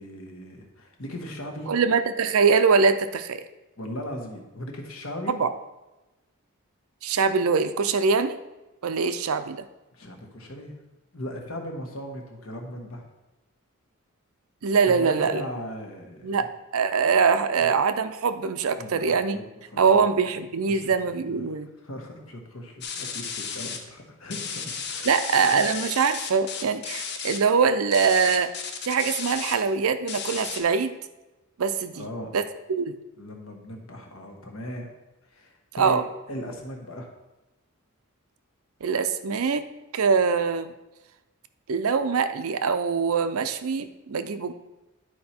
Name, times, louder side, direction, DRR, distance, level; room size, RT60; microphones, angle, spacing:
voice 1, 0.0-1.7 3.8-5.4 9.9-10.8 11.1-13.0 14.9-16.5 17.6-17.7 18.8-19.8 20.7-20.9 21.3-21.6 21.8-25.2 25.5-25.7 31.9-32.4 33.2-34.9 35.2-36.0 36.3-37.1, equal, 70° left, 2 dB, 1.3 m, -38 dB
voice 2, 1.7-3.4 5.3-5.5 7.0-8.4 8.8-9.6 14.6-15.4 16.2-16.5 16.7-19.4 19.8-21.7 25.1-28.5 28.8-30.9 31.6-32.0 32.3-32.4 32.7-32.9 35.8-36.0 38.8-39.6 39.9-40.7 41.7-44.5, right 5 dB, 75° right, 10 dB, 0.5 m, -23 dB
sound 1, 22.8-23.8 24.3-27.4 27.9-29.5 30.1-30.6, left 6 dB, 50° left, 0.8 m, -34 dB
10.5 x 4.7 x 4.3 m, 1.0 s
head